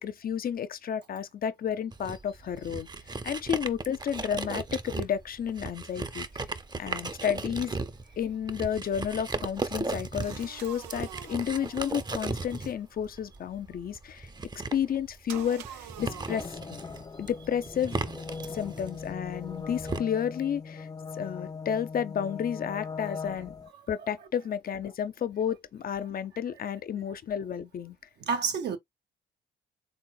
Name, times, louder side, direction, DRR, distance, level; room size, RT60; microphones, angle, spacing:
voice 1, 0.0-2.9 3.2-6.3 6.7-7.8 8.2-14.3 14.7-16.5 17.2-18.0 18.5-20.9 21.1-23.6 23.9-28.0, left 8 dB, 45° left, 0.7 m, -31 dB
sound 1, 1.9-20.0, right 3 dB, 20° right, 0.7 m, -37 dB
sound 2, 10.2-12.7 15.3-16.4, right 10 dB, 90° right, 0.5 m, -46 dB
sound 3, 16.0-23.7, left 5 dB, 20° left, 0.4 m, -40 dB
voice 2, 23.8-24.1 28.2-28.8, right 6 dB, 55° right, 0.8 m, -31 dB
4.2 x 3.7 x 2.2 m
hypercardioid pair, 55°, 20 cm